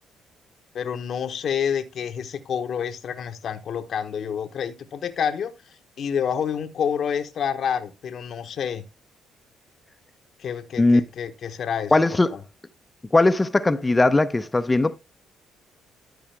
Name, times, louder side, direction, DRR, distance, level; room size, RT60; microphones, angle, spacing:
voice 1, 0.7-5.5 6.0-8.8 10.4-11.9 12.3-12.4, left 7 dB, 60° left, 1.0 m, -28 dB
voice 2, 11.9-12.3 13.1-15.0, left 2 dB, 20° left, 0.7 m, -19 dB
13.0 x 4.9 x 3.3 m
supercardioid pair, 60°, 0 cm